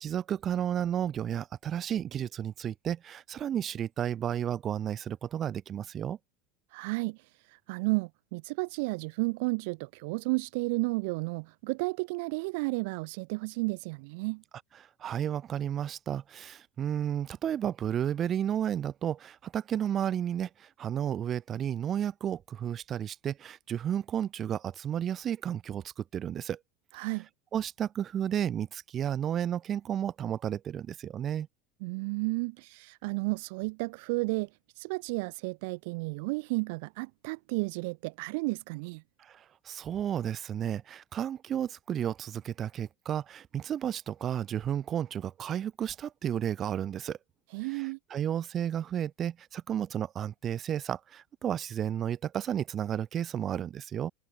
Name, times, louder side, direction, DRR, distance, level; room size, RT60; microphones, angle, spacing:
voice 1, 0.0-6.2 15.0-26.6 27.5-31.5 39.2-47.2 47.7-54.1, right 9 dB, 25° right, 1.3 m, -32 dB
voice 2, 6.7-14.4 26.9-27.3 31.8-34.5 34.8-39.0 47.5-48.0, right 28 dB, 65° right, 0.5 m, -32 dB
supercardioid pair, 170°, 0 cm